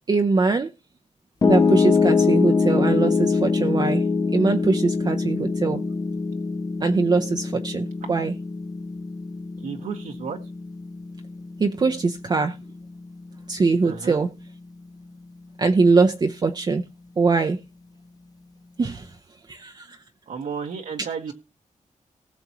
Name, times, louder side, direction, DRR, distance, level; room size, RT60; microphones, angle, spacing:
voice 1, 0.1-0.7 1.5-4.0 4.3-5.8 6.8-8.3 11.6-12.6 13.5-14.3 15.6-16.8 17.2-17.6 18.8-19.1 19.5-20.0, right 4 dB, 30° right, 0.6 m, -22 dB
Piano, 1.4-13.6, left 4 dB, 25° left, 0.6 m, -24 dB
voice 2, 9.6-10.4 13.8-14.2 20.3-21.3, right 6 dB, 85° right, 1.6 m, -32 dB
19.0 x 6.9 x 3.0 m
wide cardioid pair, 165°, 13 cm